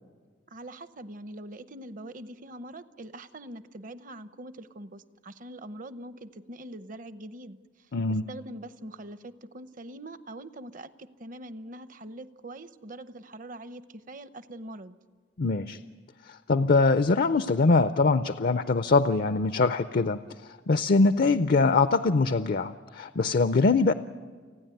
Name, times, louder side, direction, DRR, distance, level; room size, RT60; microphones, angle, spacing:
voice 1, 0.5-7.6 8.1-15.0, right 1 dB, 50° right, 13 dB, 0.8 m, -43 dB
voice 2, 7.9-8.2 15.4-15.8 16.3-23.9, left 3 dB, 55° left, 12 dB, 0.5 m, -23 dB
29.5 x 9.9 x 9.1 m, 1.5 s
head